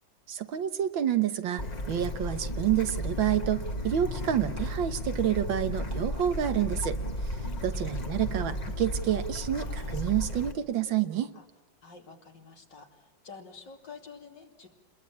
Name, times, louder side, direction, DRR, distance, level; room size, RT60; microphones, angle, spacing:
voice 1, 0.3-7.0 7.6-11.3, right 10 dB, 80° right, 10 dB, 2.0 m, -28 dB
Bird / Stream, 1.6-10.5, equal, 25° left, 1.3 m, -34 dB
voice 2, 7.4-7.9 11.3-11.4 11.8-14.7, left 5 dB, 65° left, 3 dB, 3.4 m, -49 dB
29.0 x 21.5 x 8.7 m, 1.0 s
omnidirectional pair, 2.1 m